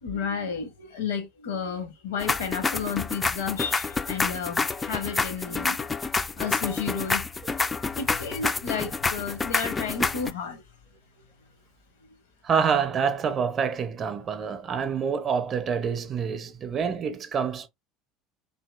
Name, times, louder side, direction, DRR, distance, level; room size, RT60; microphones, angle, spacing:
voice 1, 0.0-5.9 6.4-7.3 7.8-10.6, left 6 dB, 70° left, 0.8 m, -32 dB
sound 1, 2.2-10.3, left 4 dB, 20° left, 0.3 m, -28 dB
voice 2, 12.4-17.7, right 6 dB, 35° right, 0.6 m, -27 dB
2.8 x 2.7 x 2.3 m
figure-of-eight pair, 70°, 0 cm